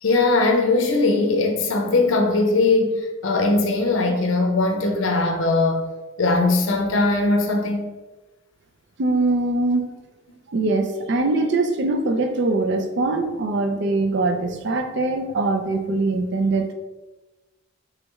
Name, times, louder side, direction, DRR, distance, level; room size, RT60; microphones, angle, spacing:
voice 1, 0.0-5.8 6.2-7.9, left 3 dB, 80° left, 3 dB, 0.6 m, -20 dB
voice 2, 9.0-9.9 10.5-16.7, right 2 dB, 60° right, 6 dB, 0.4 m, -22 dB
3.2 x 3.0 x 3.5 m, 1.1 s
head